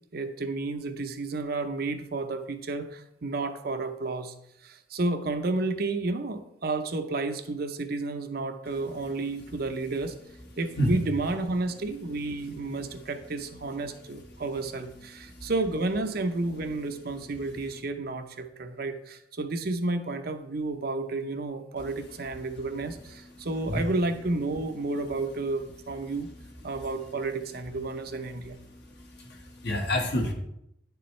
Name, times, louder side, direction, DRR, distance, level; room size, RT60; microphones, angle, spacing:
voice 1, 0.1-4.3 4.6-10.2 10.6-26.3 26.6-28.6, right 2 dB, 50° right, 7 dB, 0.7 m, -31 dB
voice 2, 28.7-30.3, equal, 55° left, 2 dB, 1.4 m, -29 dB
9.6 x 6.9 x 3.2 m, 0.79 s
head